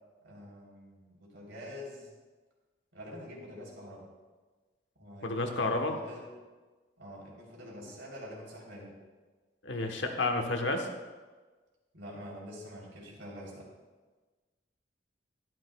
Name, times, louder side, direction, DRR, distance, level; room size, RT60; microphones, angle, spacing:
voice 1, 0.2-2.1 2.9-4.0 5.0-6.3 7.0-8.9 11.9-13.7, equal, 85° right, -3 dB, 3.4 m, -46 dB
voice 2, 5.2-5.9 9.6-10.9, left 2 dB, 85° left, 3 dB, 1.2 m, -30 dB
12.0 x 11.5 x 2.3 m, 1.3 s
head